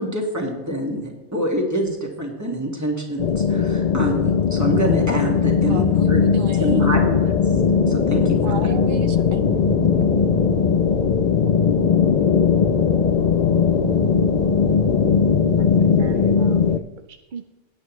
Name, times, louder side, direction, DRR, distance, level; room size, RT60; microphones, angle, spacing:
voice 1, 0.0-6.2 6.6-7.2 7.9-8.6, right 1 dB, 15° right, 0 dB, 2.0 m, -25 dB
sound 1, 3.2-16.8, left 7 dB, 70° left, 0.4 m, -19 dB
voice 2, 5.7-7.4 8.4-9.9 11.4-11.8, right 6 dB, 90° right, 9 dB, 1.2 m, -35 dB
sound 2, 7.5-16.3, left 1 dB, 10° left, 0.9 m, -27 dB
voice 3, 15.5-17.5, right 6 dB, 50° right, 7 dB, 0.6 m, -41 dB
17.0 x 9.1 x 3.1 m, 1.1 s
omnidirectional pair, 1.3 m